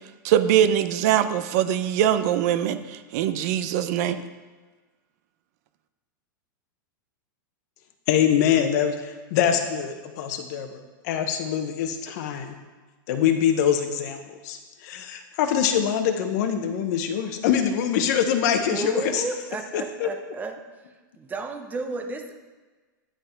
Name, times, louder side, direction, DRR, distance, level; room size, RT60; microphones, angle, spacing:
voice 1, 0.2-4.2, right 10 dB, 50° right, 11 dB, 0.6 m, -22 dB
voice 2, 8.1-10.8 11.0-12.5 13.1-19.2 19.7-20.1, left 8 dB, 55° left, 7 dB, 1.0 m, -24 dB
voice 3, 18.6-20.6 21.2-22.3, right 3 dB, 15° right, 5 dB, 0.8 m, -32 dB
10.0 x 5.6 x 4.5 m, 1.3 s
supercardioid pair, 145°, 11 cm